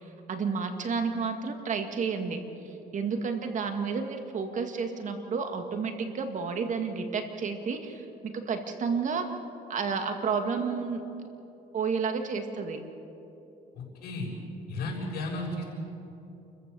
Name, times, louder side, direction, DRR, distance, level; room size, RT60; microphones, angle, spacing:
voice 1, 0.3-2.4 2.9-9.3 9.7-11.0 11.7-12.8, right 5 dB, 45° right, 5 dB, 2.2 m, -31 dB
voice 2, 14.7-15.6, left 2 dB, 70° left, -3 dB, 6.9 m, -33 dB
29.0 x 15.0 x 7.2 m, 2.9 s
cardioid pair, 110°, 17 cm